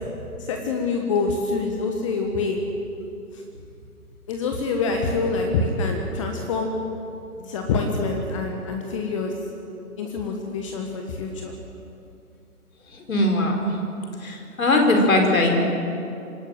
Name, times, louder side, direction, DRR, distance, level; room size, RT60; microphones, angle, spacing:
voice 1, 0.4-2.6 3.3-3.4 4.3-6.8 7.4-9.3 10.0-11.5, left 4 dB, 20° left, 3 dB, 1.3 m, -26 dB
voice 2, 12.9-13.6 14.2-15.5, left 2 dB, 60° left, 2 dB, 4.8 m, -20 dB
25.0 x 13.0 x 9.2 m, 2.7 s
figure-of-eight pair, 140°, 46 cm